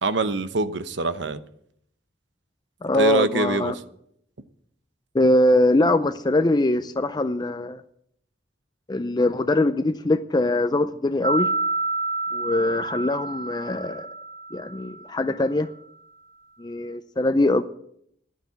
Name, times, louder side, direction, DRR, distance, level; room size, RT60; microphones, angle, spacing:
voice 1, 0.0-1.4 2.9-3.7, right 3 dB, 80° right, 0.9 m, -24 dB
voice 2, 2.8-3.7 5.1-7.8 8.9-11.5 12.3-14.1 14.5-15.7 16.6-17.6, left 1 dB, 25° left, 0.5 m, -22 dB
sound 1, 11.2-15.1, right 3 dB, 50° right, 0.6 m, -29 dB
11.5 x 9.6 x 8.2 m
head